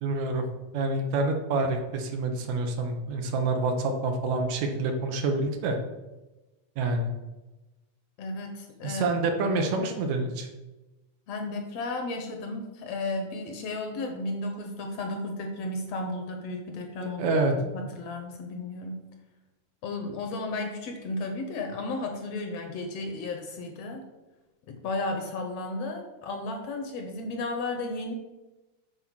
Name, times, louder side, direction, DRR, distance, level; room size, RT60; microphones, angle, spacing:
voice 1, 0.0-0.5 0.7-5.8 6.8-7.1 8.8-10.5 17.2-17.6, right 3 dB, 75° right, 4 dB, 2.2 m, -27 dB
voice 2, 8.2-9.1 11.3-17.3 17.6-19.0 19.8-24.1 24.7-28.1, left 2 dB, 70° left, 4 dB, 1.7 m, -34 dB
8.1 x 4.2 x 6.1 m, 1.1 s
omnidirectional pair, 3.4 m